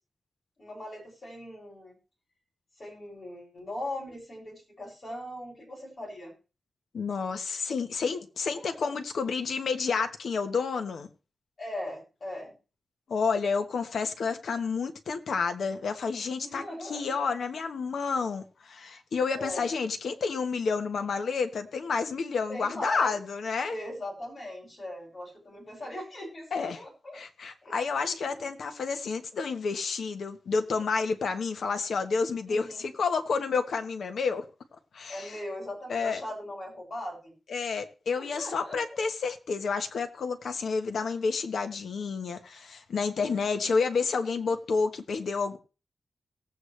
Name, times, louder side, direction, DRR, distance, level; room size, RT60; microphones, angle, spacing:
voice 1, 0.6-2.0 2.8-6.3 8.5-8.9 11.6-12.6 16.4-17.2 19.3-19.7 22.5-23.2 23.7-27.2 27.6-27.8 28.1-28.2 32.4-32.9 35.1-37.3 38.2-39.0 43.2-43.8, left 1 dB, 35° left, 6.7 m, -39 dB
voice 2, 6.9-11.1 13.1-23.8 26.5-26.8 27.1-34.4 34.9-35.4 35.9-36.2 37.5-45.6, left 5 dB, 70° left, 1.2 m, -30 dB
18.5 x 8.1 x 3.3 m
wide cardioid pair, 150°, 0 cm